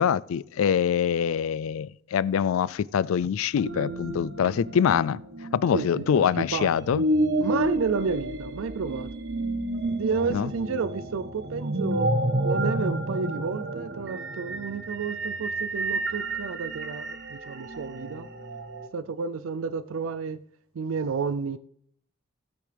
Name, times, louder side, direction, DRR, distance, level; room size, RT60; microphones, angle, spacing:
voice 1, 0.0-5.2 5.5-7.0 10.3-10.5, left 8 dB, 85° left, 0.3 m, -24 dB
sound 1, 3.6-18.9, right 1 dB, 55° right, 1.0 m, -30 dB
voice 2, 5.7-6.7 7.4-9.1 10.0-12.1 12.4-18.3 18.9-20.4 20.7-21.6, right 5 dB, 80° right, 0.4 m, -31 dB
16.5 x 8.5 x 3.4 m
head